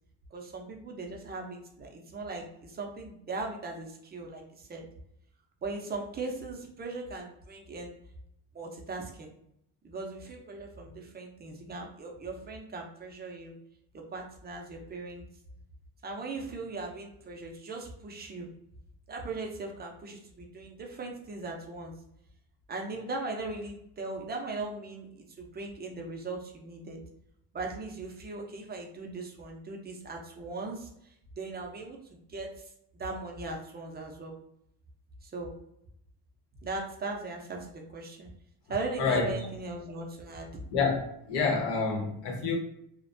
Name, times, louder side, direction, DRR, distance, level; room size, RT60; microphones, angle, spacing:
voice 1, 0.3-4.9 5.6-7.9 8.5-9.3 9.8-13.5 13.9-15.2 16.0-18.5 19.1-21.9 22.7-27.0 27.5-34.4 35.2-35.6 36.6-38.3 38.7-40.5, right 3 dB, 25° right, 0.4 m, -39 dB
voice 2, 39.0-39.3 40.7-42.6, left 4 dB, 75° left, 0.9 m, -28 dB
2.4 x 2.1 x 2.5 m
cardioid pair, 125°, 41 cm